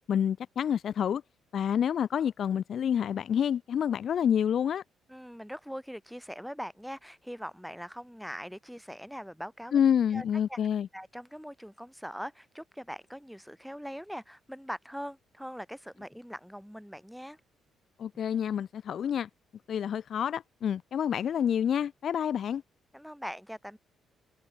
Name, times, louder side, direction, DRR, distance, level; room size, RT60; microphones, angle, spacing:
voice 1, 0.1-1.2 1.5-4.8 9.7-10.9 18.0-19.3 19.7-22.6, left 8 dB, 60° left, 1.6 m, -28 dB
voice 2, 5.1-9.8 10.1-10.2 10.5-10.6 10.9-17.4 22.9-23.8, equal, ahead, 5.7 m, -41 dB
cardioid pair, 90°, 0 cm